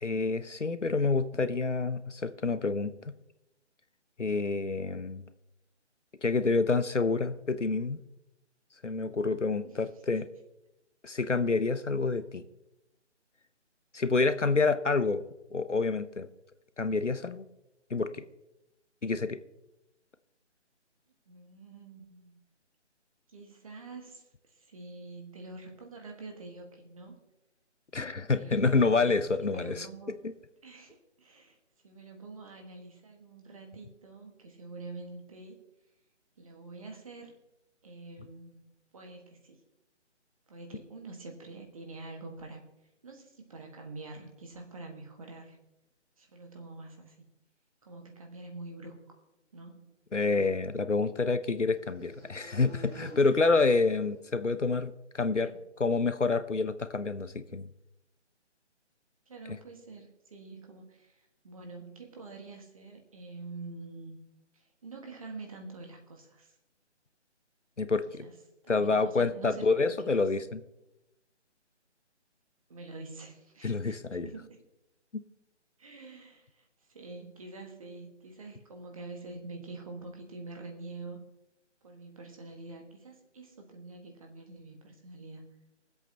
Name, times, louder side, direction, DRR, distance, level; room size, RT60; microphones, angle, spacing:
voice 1, 0.0-3.1 4.2-5.2 6.2-8.0 8.8-10.3 11.0-12.4 13.9-15.2 15.5-16.3 16.8-17.4 17.9-18.2 19.0-19.4 27.9-29.9 50.1-55.5 55.8-57.7 67.8-68.3 68.7-70.6 73.6-74.3 75.1-75.2, left 3 dB, 80° left, 12 dB, 0.9 m, -28 dB
voice 2, 21.3-22.4 23.3-27.1 28.3-30.1 30.6-31.6 31.8-35.6 36.4-37.3 37.8-38.6 38.9-39.6 40.5-42.6 43.0-45.6 46.2-47.3 47.8-49.2 49.5-49.9 55.3-55.6 59.2-64.2 64.5-66.6 68.0-68.4 68.6-70.3 72.7-74.6 75.8-81.2 81.8-85.5, right 3 dB, 30° right, 3 dB, 1.7 m, -46 dB
sound 1, 50.1-54.7, right 2 dB, ahead, 0.7 m, -52 dB
24.0 x 8.1 x 3.0 m, 0.90 s
figure-of-eight pair, 150°, 35 cm